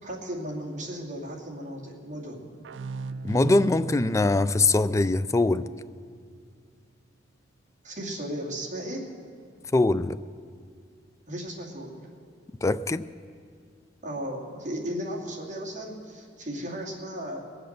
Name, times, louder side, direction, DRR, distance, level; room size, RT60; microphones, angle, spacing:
voice 1, 0.0-2.5 7.8-9.1 11.3-12.1 14.0-17.4, equal, 40° right, -3 dB, 2.5 m, -35 dB
sound 1, 2.6-6.1, right 3 dB, 70° right, 0.4 m, -38 dB
voice 2, 3.2-5.7 9.7-10.2 12.6-13.1, left 2 dB, 15° left, 13 dB, 0.3 m, -22 dB
21.5 x 7.8 x 6.7 m, 2.1 s
head